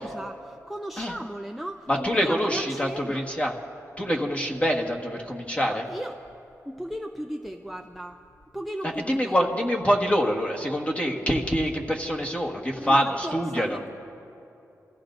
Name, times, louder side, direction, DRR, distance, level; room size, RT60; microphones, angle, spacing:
voice 1, 0.0-3.2 5.7-6.2 6.7-8.2 8.5-9.4 12.7-13.9, equal, ahead, 4 dB, 0.5 m, -36 dB
voice 2, 1.9-3.5 4.0-5.8 9.1-13.8, equal, 20° left, 0 dB, 1.5 m, -25 dB
27.5 x 14.5 x 2.6 m, 2.8 s
cardioid pair, 80°, 6 cm